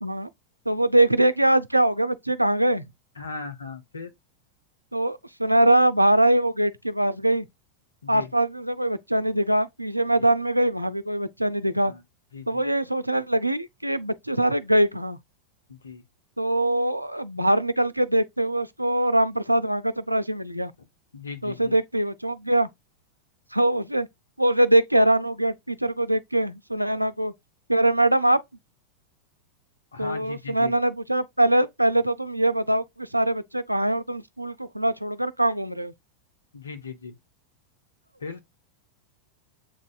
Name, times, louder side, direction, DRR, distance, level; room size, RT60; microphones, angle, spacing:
voice 1, 0.7-2.8 4.9-7.5 8.1-11.9 12.5-15.2 16.4-20.7 21.4-22.7 23.5-24.1 24.4-27.3 27.7-28.4 30.0-35.9, right 1 dB, 85° right, 0.3 m, -23 dB
voice 2, 3.2-4.1 8.0-8.3 11.8-12.0 12.3-12.7 15.7-16.0 21.1-21.8 29.9-30.8 36.5-37.2 38.2-38.4, left 5 dB, 75° left, 0.8 m, -38 dB
7.5 x 2.6 x 2.2 m
figure-of-eight pair, 90°, 0 cm